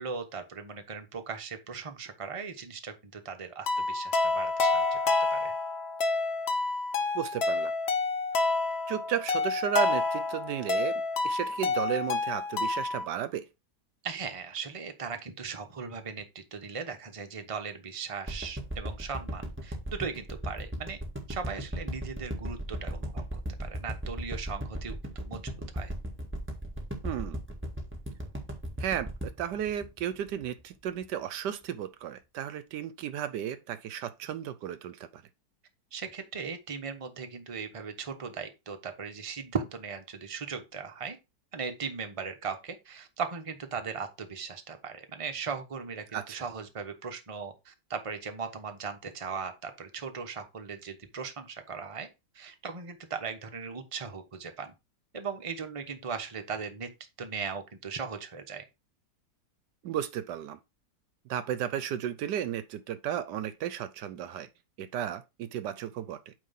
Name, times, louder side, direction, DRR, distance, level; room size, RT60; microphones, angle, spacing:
voice 1, 0.0-5.0 5.3-5.5 14.0-21.0 21.3-23.2 23.6-25.9 35.9-41.2 41.5-52.1 52.3-54.7 55.1-56.9 57.2-58.6, right 5 dB, 25° right, 0.9 m, -38 dB
sound 1, 3.7-13.0, left 3 dB, 45° left, 0.9 m, -28 dB
voice 2, 7.1-7.7 8.9-13.4 27.0-27.4 28.8-35.2 46.1-46.4 59.8-60.6 61.3-64.5 64.8-66.3, right 10 dB, 75° right, 1.2 m, -34 dB
sound 2, 18.3-30.6 31.0-31.1, equal, 5° right, 1.6 m, -36 dB
8.8 x 3.2 x 5.7 m
omnidirectional pair, 1.9 m